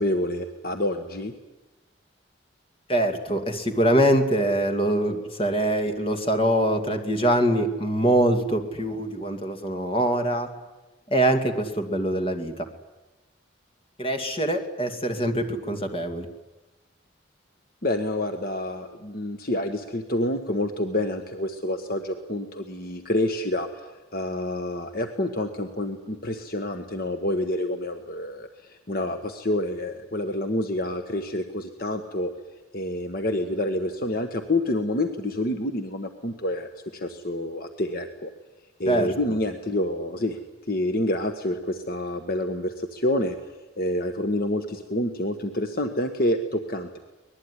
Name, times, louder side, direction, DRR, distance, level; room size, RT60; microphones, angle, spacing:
voice 1, 0.0-1.3 17.8-32.3 32.7-38.3 38.8-40.4 40.7-43.4 43.8-47.0, left 1 dB, 50° left, 6 dB, 1.4 m, -28 dB
voice 2, 2.9-10.5 11.1-12.7 14.0-16.3 38.9-39.1, right 1 dB, 30° left, 5 dB, 2.4 m, -24 dB
24.0 x 20.0 x 9.9 m, 1.1 s
head